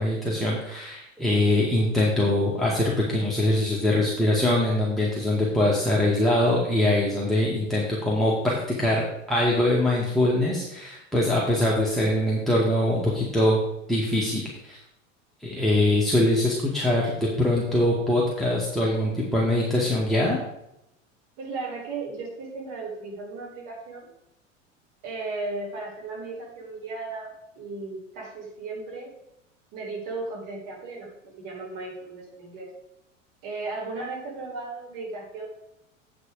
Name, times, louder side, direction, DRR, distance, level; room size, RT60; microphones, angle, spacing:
voice 1, 0.0-9.0 9.3-13.6 13.9-14.8 15.4-20.4, left 1 dB, ahead, -5 dB, 2.1 m, -23 dB
voice 2, 21.4-24.1 25.0-29.1 29.7-31.1 31.4-32.7 33.4-35.5, right 3 dB, 50° right, -1 dB, 4.0 m, -35 dB
8.4 x 6.8 x 5.0 m, 0.81 s
hypercardioid pair, 85°, 38 cm